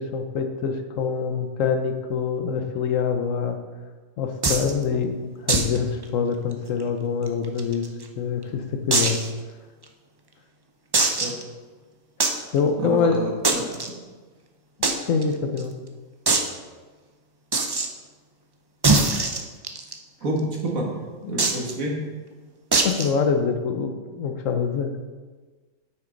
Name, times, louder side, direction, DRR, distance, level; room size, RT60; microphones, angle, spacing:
voice 1, 0.0-3.6 4.2-7.9 8.2-9.2 12.5-13.2 14.9-15.7 21.2-21.3 21.8-21.9 22.7-24.9, left 6 dB, 70° left, 6 dB, 1.1 m, -25 dB
sound 1, 4.4-4.7 5.5-5.8 6.0-6.1 6.5-6.6 7.3-8.0 8.9-9.3 9.8-9.9 10.9-11.4 12.2-12.4 13.4-13.9 14.8-14.9 15.2-15.3 15.6-15.7 16.3-16.5 17.5-17.9 18.8-19.9 21.4-21.7 22.7-23.1, right 3 dB, 35° right, 0.4 m, -21 dB
voice 2, 12.8-14.0 20.2-20.9 21.3-21.9, right 1 dB, 80° right, -2 dB, 2.0 m, -28 dB
9.2 x 6.5 x 3.9 m, 1.4 s
omnidirectional pair, 1.4 m